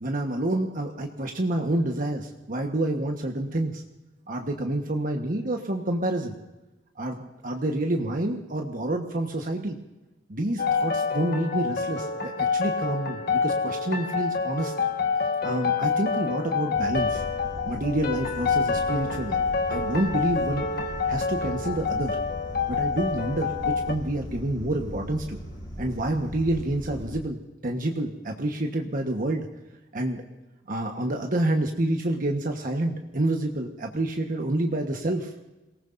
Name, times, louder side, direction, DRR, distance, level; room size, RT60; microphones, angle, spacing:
voice 1, 0.0-3.8 4.3-6.3 7.0-9.8 10.3-14.7 15.4-17.2 17.7-19.4 19.7-20.6 21.1-22.2 22.7-25.4 25.8-29.5 29.9-30.2 30.7-35.3, right 1 dB, 50° right, 2 dB, 1.3 m, -28 dB
sound 1, 10.6-23.9, left 5 dB, 55° left, 1.5 m, -27 dB
sound 2, 16.7-27.2, equal, 25° left, 5.0 m, -39 dB
27.0 x 18.5 x 2.6 m, 1.0 s
head